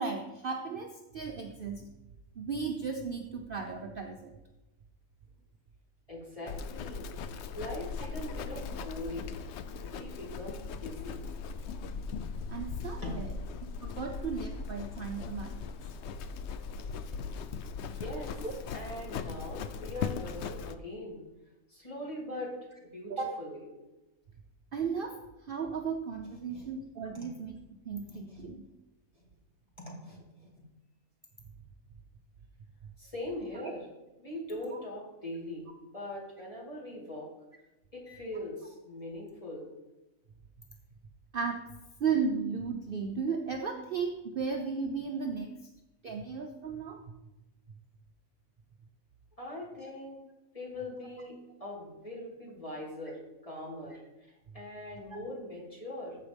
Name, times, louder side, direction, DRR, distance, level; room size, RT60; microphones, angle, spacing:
voice 1, 0.0-1.9 2.4-4.3 12.5-13.3 13.6-15.9 18.4-18.5 23.1-23.3 24.7-25.2 25.4-27.5 27.9-28.6 33.6-33.7 41.3-41.6 42.0-45.5 46.0-47.0 49.8-49.9 55.1-55.2, right 5 dB, 50° right, 3 dB, 0.8 m, -35 dB
voice 2, 6.1-9.4 9.8-11.2 13.0-13.6 17.9-18.5 18.7-21.2 21.7-22.5 22.9-23.1 23.4-23.6 26.2-26.7 27.1-27.3 28.0-28.5 29.1-29.2 29.8-30.7 33.0-33.9 34.2-37.3 37.9-39.7 49.4-50.2 50.5-56.2, left 1 dB, 25° left, -4 dB, 2.4 m, -42 dB
Livestock farm animals working animals, 6.5-20.8, left 5 dB, 65° left, 0.7 m, -39 dB
14.0 x 5.7 x 3.4 m, 1.0 s
omnidirectional pair, 1.5 m